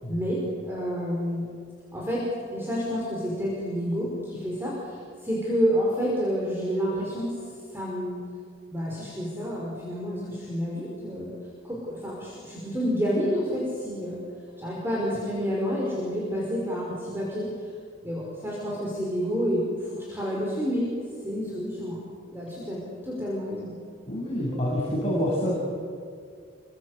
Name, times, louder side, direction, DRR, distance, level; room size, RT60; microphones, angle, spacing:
voice 1, 0.1-1.5 1.9-2.2 2.5-7.3 7.7-8.2 8.7-11.3 11.6-14.2 14.6-17.5 18.0-20.9 21.2-22.0 22.3-23.7, equal, 10° right, -5 dB, 5.5 m, -29 dB
voice 2, 24.1-25.6, equal, 30° left, -6 dB, 6.8 m, -27 dB
29.0 x 24.5 x 8.3 m, 2.2 s
head